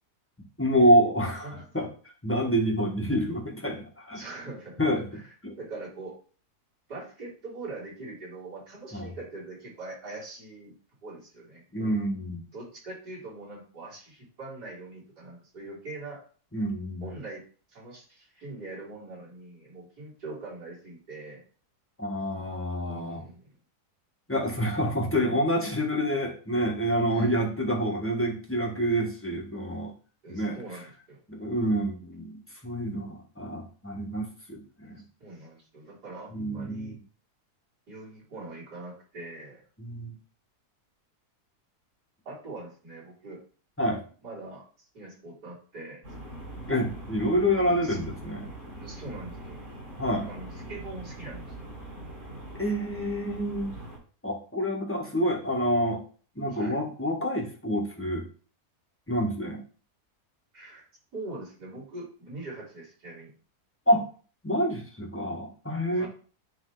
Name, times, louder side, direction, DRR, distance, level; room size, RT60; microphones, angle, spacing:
voice 1, 0.6-1.9 2.2-4.2 4.8-5.1 5.4-5.5 8.9-9.1 11.7-12.4 16.5-17.2 22.0-23.2 24.3-29.9 30.3-30.6 31.3-35.0 36.3-37.0 39.8-40.1 43.8-44.0 46.7-48.5 50.0-50.3 52.5-53.7 54.2-56.0 56.4-58.3 59.1-59.6 63.9-64.1 64.4-66.0, equal, 10° left, -1 dB, 1.2 m, -27 dB
voice 2, 1.3-1.9 4.1-5.3 5.6-6.2 6.9-10.7 11.0-12.0 12.5-16.2 17.0-17.4 17.7-21.4 22.8-23.5 27.1-27.4 30.2-31.2 34.8-37.0 37.9-39.6 42.2-43.4 44.2-44.7 44.9-46.0 47.5-48.0 48.8-49.6 50.3-51.7 56.5-56.8 60.5-60.8 61.1-63.3 65.9-66.1, right 2 dB, 85° right, -8 dB, 4.6 m, -42 dB
sound 1, 46.0-54.0, right 1 dB, 60° right, 4.0 m, -42 dB
9.9 x 3.4 x 3.8 m, 0.40 s
omnidirectional pair, 1.7 m